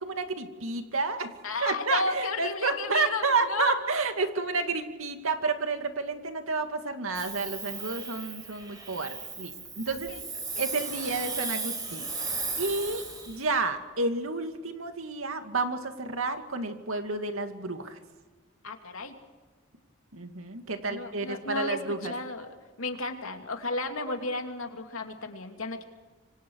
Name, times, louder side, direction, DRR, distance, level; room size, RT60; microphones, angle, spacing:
voice 1, 0.0-1.3 1.6-10.1 10.6-18.0 20.1-22.1, right 3 dB, 85° right, 6 dB, 2.4 m, -30 dB
voice 2, 1.4-3.7 9.9-10.2 10.6-10.7 18.6-19.1 20.8-25.8, left 3 dB, 85° left, 4 dB, 2.9 m, -33 dB
Hiss, 7.1-13.4, right 3 dB, 20° right, 6.6 m, -36 dB
26.5 x 25.0 x 4.8 m, 1.3 s
head